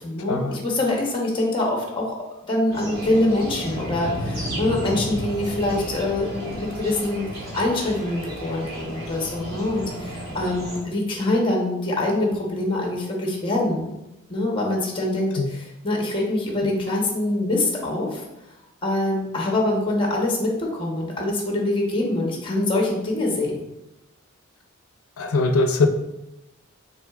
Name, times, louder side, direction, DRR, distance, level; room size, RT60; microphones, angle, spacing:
voice 1, 0.0-2.2 2.5-13.9 14.3-18.2 18.8-23.6, left 2 dB, 25° left, -1 dB, 0.9 m, -24 dB
sound 1, 2.7-10.8, equal, 45° right, 1.5 m, -32 dB
voice 2, 25.2-25.9, left 3 dB, 75° left, 7 dB, 0.5 m, -21 dB
5.8 x 3.9 x 2.4 m, 0.94 s
head